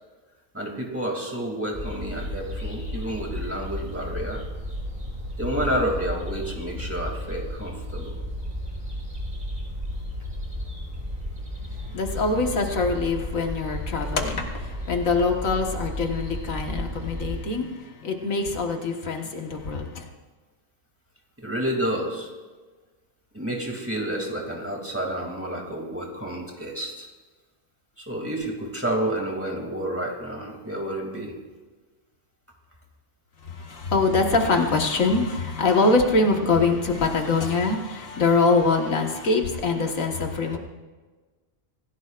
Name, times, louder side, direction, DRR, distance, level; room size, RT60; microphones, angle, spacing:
voice 1, 0.5-4.4 5.4-8.1 21.4-22.3 23.3-27.1 28.0-31.3, right 1 dB, 10° right, -1 dB, 2.7 m, -30 dB
sound 1, 1.7-17.4, left 1 dB, 35° right, 4.7 m, -33 dB
voice 2, 11.8-20.1 33.4-40.6, left 3 dB, 90° left, 3 dB, 2.0 m, -24 dB
26.5 x 16.0 x 2.5 m, 1.3 s
omnidirectional pair, 1.4 m